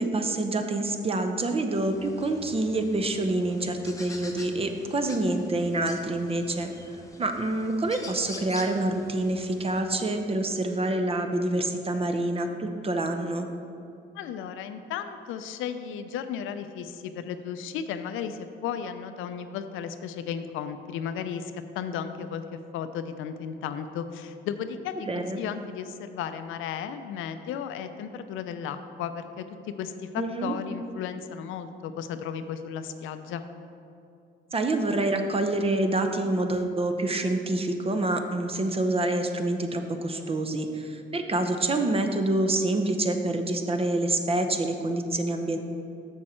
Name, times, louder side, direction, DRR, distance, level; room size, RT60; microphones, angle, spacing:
voice 1, 0.0-6.7 7.2-13.5 25.0-25.4 30.2-30.5 34.5-45.6, right 2 dB, 30° right, 6 dB, 0.7 m, -27 dB
sound 1, 1.7-9.8, left 2 dB, 15° left, 0.9 m, -46 dB
voice 2, 14.1-33.4, left 8 dB, 90° left, 9 dB, 0.5 m, -35 dB
7.2 x 6.3 x 4.4 m, 2.7 s
cardioid pair, 90°, 20 cm